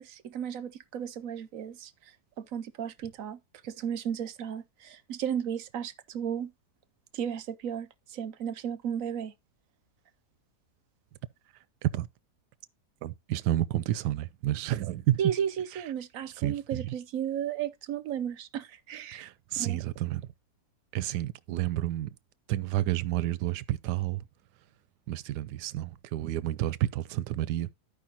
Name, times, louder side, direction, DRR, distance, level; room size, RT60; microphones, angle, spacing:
voice 1, 0.0-6.5 7.1-9.3 15.2-19.3 19.6-19.8, right 9 dB, 65° right, 0.9 m, -34 dB
voice 2, 13.0-15.2 16.4-16.9 19.1-20.3 20.9-22.1 22.5-24.2 25.1-27.7, right 14 dB, 85° right, 1.2 m, -30 dB
14.0 x 5.1 x 2.8 m
omnidirectional pair, 1.7 m